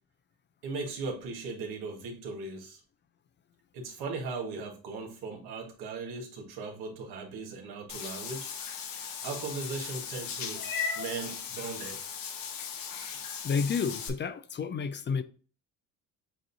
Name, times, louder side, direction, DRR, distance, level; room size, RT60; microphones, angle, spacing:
voice 1, 0.6-2.8 3.7-8.5 9.0-10.7 10.9-12.0, right 4 dB, 85° right, 1.6 m, -38 dB
Meow / Water / Bathtub (filling or washing), 7.9-14.1, left 6 dB, 60° left, 1.0 m, -37 dB
voice 2, 13.4-15.2, left 5 dB, 30° left, 0.4 m, -30 dB
7.7 x 2.7 x 2.6 m
supercardioid pair, 80°, 37 cm